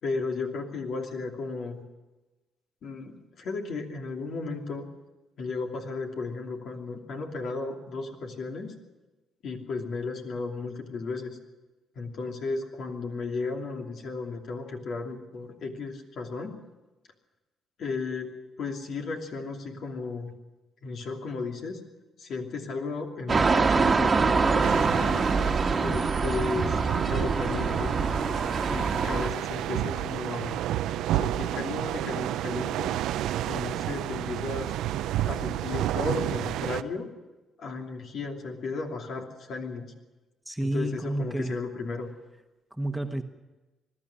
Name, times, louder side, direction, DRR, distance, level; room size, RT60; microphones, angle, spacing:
voice 1, 0.0-1.8 2.8-4.8 5.4-8.7 9.4-11.4 12.0-16.6 17.8-20.3 20.8-21.8 22.2-25.2 25.8-26.8 27.1-28.0 28.7-30.6 31.1-32.9 33.5-34.7 35.3-37.1 37.6-39.9 40.6-42.1, left 4 dB, 65° left, 3 dB, 2.8 m, -34 dB
sound 1, 23.3-29.3, right 4 dB, 35° right, 1.4 m, -25 dB
sound 2, 24.6-36.8, right 12 dB, 85° right, 0.6 m, -31 dB
voice 2, 40.5-41.5 42.8-43.2, right 1 dB, 5° right, 6 dB, 1.3 m, -30 dB
21.0 x 12.5 x 10.0 m, 1.1 s
cardioid pair, 90°, 0 cm